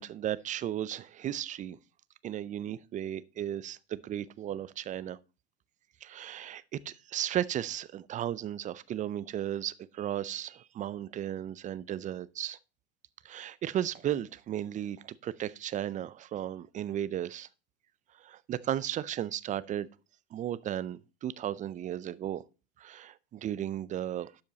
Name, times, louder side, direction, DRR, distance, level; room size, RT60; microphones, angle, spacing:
voice 1, 0.0-1.8 2.2-5.2 6.0-12.6 13.2-17.5 18.2-19.9 20.3-22.4 22.8-24.3, right 11 dB, 25° right, 0.4 m, -35 dB
12.0 x 5.2 x 4.1 m
hypercardioid pair, 105°, 32 cm